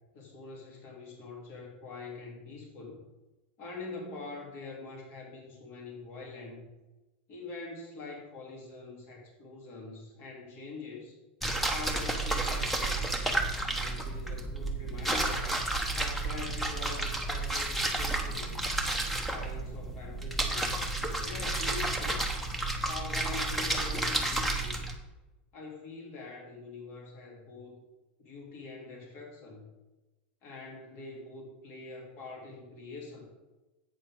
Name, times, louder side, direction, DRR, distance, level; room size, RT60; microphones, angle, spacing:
voice 1, 0.1-3.0 3.6-6.7 7.3-11.2 11.7-13.1 13.7-15.5 15.9-18.6 19.2-20.7 21.2-22.2 22.9-24.8 25.5-27.8 28.2-29.7 30.4-33.3, left 3 dB, 45° left, -1 dB, 3.2 m, -44 dB
sound 1, 11.4-24.9, right 2 dB, 5° left, 1.1 m, -31 dB
11.0 x 8.5 x 3.8 m, 1.1 s
supercardioid pair, 145°, 6 cm